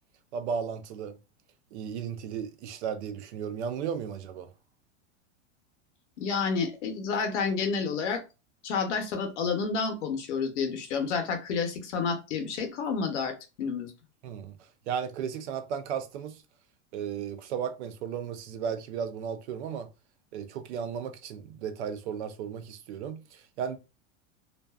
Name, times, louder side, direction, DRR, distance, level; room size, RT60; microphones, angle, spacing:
voice 1, 0.3-1.2 1.7-4.5 14.2-14.6 14.9-16.4 16.9-19.9 20.3-23.8, right 7 dB, 70° right, 0.5 m, -35 dB
voice 2, 6.2-8.2 8.6-13.9, left 5 dB, 80° left, 0.9 m, -30 dB
2.5 x 2.3 x 2.3 m
supercardioid pair, 180°, 36 cm